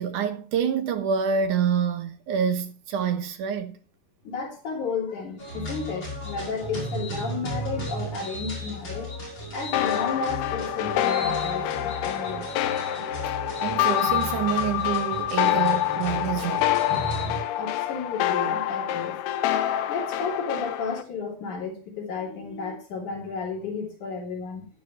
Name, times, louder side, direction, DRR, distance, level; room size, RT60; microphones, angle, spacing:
voice 1, 0.0-3.8 13.6-16.7, right 7 dB, 70° right, 2.0 m, -27 dB
voice 2, 4.2-9.1 9.5-12.5 17.6-19.2 19.9-24.7, left 5 dB, 50° left, 4.2 m, -33 dB
sound 1, 5.4-17.4, right 1 dB, 30° left, 6.5 m, -35 dB
sound 2, 9.7-21.0, left 12 dB, 80° left, 2.6 m, -26 dB
13.5 x 11.0 x 3.1 m
omnidirectional pair, 4.7 m